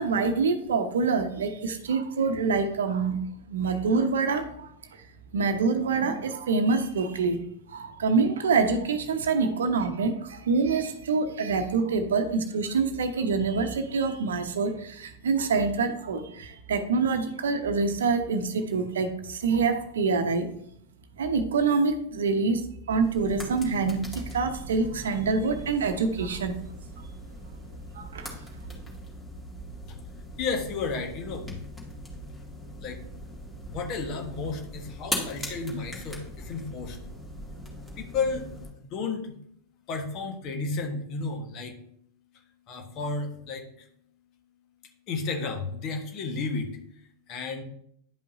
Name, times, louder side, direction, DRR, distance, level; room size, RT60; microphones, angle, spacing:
voice 1, 0.0-3.2 3.5-5.0 5.3-20.5 21.2-26.6 27.9-28.3, right 4 dB, 65° right, 8 dB, 0.8 m, -26 dB
sound 1, 23.0-38.7, equal, 10° left, 2.3 m, -40 dB
voice 2, 30.4-31.6 32.8-33.0 33.7-37.0 38.0-38.4 38.8-39.4 39.9-41.7 42.7-43.9 45.1-46.7 47.3-47.6, left 4 dB, 40° left, 3 dB, 1.4 m, -32 dB
11.0 x 5.4 x 2.7 m, 0.69 s
figure-of-eight pair, 90°, 0 cm